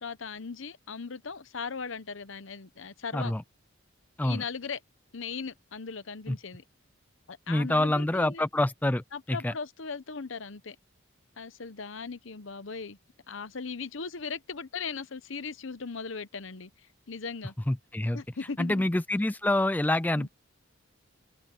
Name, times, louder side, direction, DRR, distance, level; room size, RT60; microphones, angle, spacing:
voice 1, 0.0-3.3 4.2-4.8 5.1-6.6 7.3-8.4 9.1-10.8 11.4-13.0 13.3-16.7 17.1-17.5 18.1-18.9 20.2-20.3, left 5 dB, 65° left, 0.9 m, -38 dB
voice 2, 7.5-9.5 17.7-18.2 18.6-20.3, left 1 dB, 10° left, 0.3 m, -27 dB
head